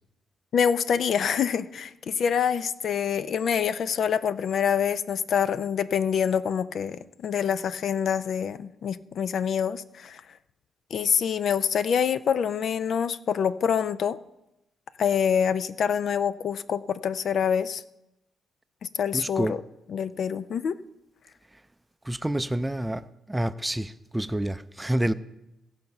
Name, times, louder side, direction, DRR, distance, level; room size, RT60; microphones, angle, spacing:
voice 1, 0.5-10.2 10.9-14.2 15.0-17.8 18.8-19.6 19.9-20.8, left 7 dB, 65° left, 0.5 m, -26 dB
voice 2, 19.1-19.6 22.0-25.1, right 1 dB, 10° right, 0.5 m, -28 dB
17.5 x 5.8 x 5.4 m
cardioid pair, 80°, 0 cm